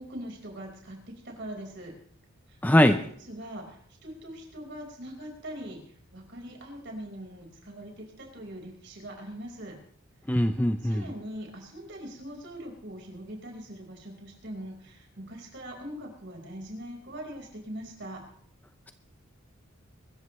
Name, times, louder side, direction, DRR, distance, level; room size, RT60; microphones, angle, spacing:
voice 1, 0.0-1.9 2.5-2.9 3.3-5.8 6.1-9.7 10.8-18.2, right 1 dB, 55° right, 2 dB, 4.8 m, -42 dB
voice 2, 2.6-3.0 10.3-11.0, left 1 dB, 10° left, 8 dB, 0.6 m, -21 dB
23.5 x 14.0 x 3.2 m, 0.62 s
head